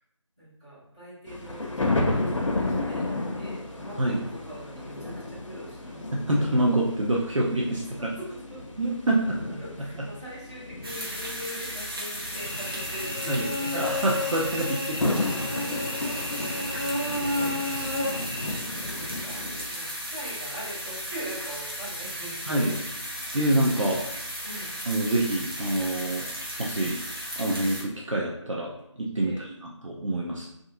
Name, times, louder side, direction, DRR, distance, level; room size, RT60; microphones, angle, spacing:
voice 1, 0.4-6.1 8.0-8.6 9.2-14.1 14.6-14.7 15.6-16.3 17.3-18.0 18.7-19.4 19.7-22.8 23.0-24.0 24.4-24.7 29.1-29.4, equal, 15° right, -13 dB, 0.7 m, -43 dB
sound 1, 1.3-19.8, left 2 dB, 80° left, 0.6 m, -33 dB
voice 2, 6.1-7.8 8.8-9.2 9.5-9.6 13.3-13.5 13.7-15.4 17.0-17.2 22.5-22.8 23.3-24.0 24.9-26.2 26.6-27.0 27.4-28.7 29.0-30.5, right 1 dB, 75° right, -2 dB, 0.5 m, -26 dB
sound 2, 10.8-27.8, equal, 50° right, 0.8 m, -36 dB
Cricket / Buzz, 12.3-18.5, left 1 dB, 20° left, 0.4 m, -32 dB
2.5 x 2.4 x 2.5 m, 0.77 s
figure-of-eight pair, 165°, 16 cm